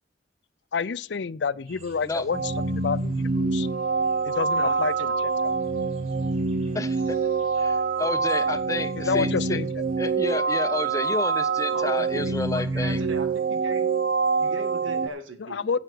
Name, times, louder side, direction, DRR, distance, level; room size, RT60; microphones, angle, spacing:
voice 1, 0.7-3.7 4.2-5.5 8.9-9.7 15.4-15.8, left 5 dB, 60° left, 0.5 m, -29 dB
sound 1, 1.7-15.1, right 2 dB, 35° right, 4.4 m, -53 dB
sound 2, 2.3-15.1, right 4 dB, 60° right, 0.7 m, -25 dB
voice 2, 4.6-5.1 11.7-13.8 14.4-15.8, right 2 dB, 85° right, 1.6 m, -39 dB
voice 3, 6.7-7.2 7.6-9.6 10.0-13.0, left 2 dB, 15° left, 0.7 m, -30 dB
9.5 x 7.8 x 6.1 m
head